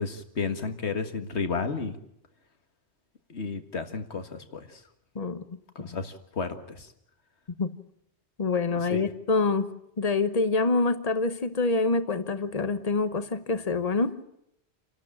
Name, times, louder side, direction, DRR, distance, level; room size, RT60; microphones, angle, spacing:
voice 1, 0.0-2.0 3.3-4.8 5.8-6.9 8.7-9.1, left 4 dB, 70° left, 8 dB, 1.9 m, -32 dB
voice 2, 8.4-14.2, left 3 dB, 35° left, 11 dB, 1.2 m, -26 dB
28.5 x 12.0 x 8.8 m, 0.76 s
omnidirectional pair, 1.2 m